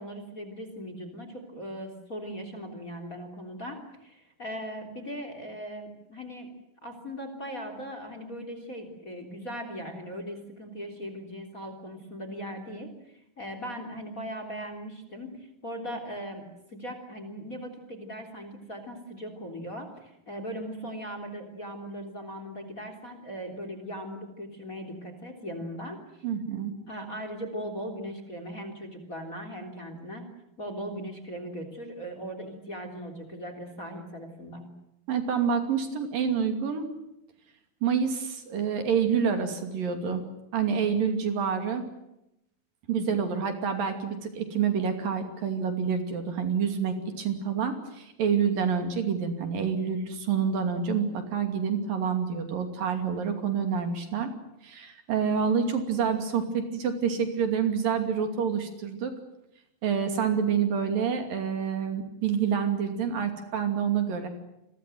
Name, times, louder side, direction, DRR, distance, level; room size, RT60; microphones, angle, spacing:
voice 1, 0.0-6.5 6.8-26.2 26.9-30.3 30.6-34.7, equal, 20° left, 7 dB, 3.4 m, -39 dB
voice 2, 26.2-26.7 35.1-36.9 37.8-40.2 40.5-41.8 42.9-54.3 54.6-59.1 59.8-64.3, right 7 dB, 60° right, 6 dB, 4.2 m, -27 dB
28.5 x 22.5 x 7.8 m, 0.83 s
omnidirectional pair, 4.5 m